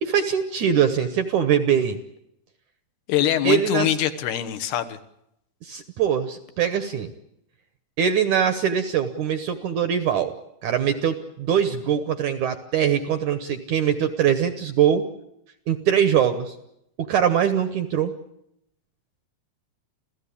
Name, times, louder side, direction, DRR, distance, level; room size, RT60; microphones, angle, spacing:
voice 1, 0.0-2.0 3.4-3.9 5.6-7.1 8.0-10.3 10.6-15.0 15.7-16.5 17.1-18.1, right 8 dB, 70° right, 9 dB, 1.9 m, -22 dB
voice 2, 3.1-5.0, left 12 dB, 80° left, 9 dB, 3.2 m, -23 dB
28.0 x 16.0 x 8.5 m, 0.80 s
omnidirectional pair, 4.6 m